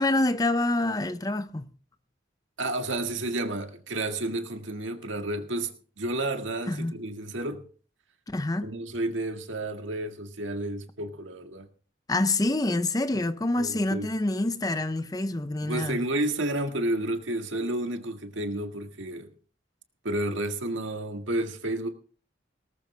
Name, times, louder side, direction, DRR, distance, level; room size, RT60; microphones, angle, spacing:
voice 1, 0.0-1.7 6.7-6.9 8.3-8.7 12.1-16.0, left 2 dB, 20° left, 0.6 m, -26 dB
voice 2, 2.6-7.6 8.6-11.7 13.6-14.1 15.6-19.3 20.0-21.9, right 1 dB, 85° right, 1.8 m, -31 dB
18.5 x 13.5 x 3.3 m
head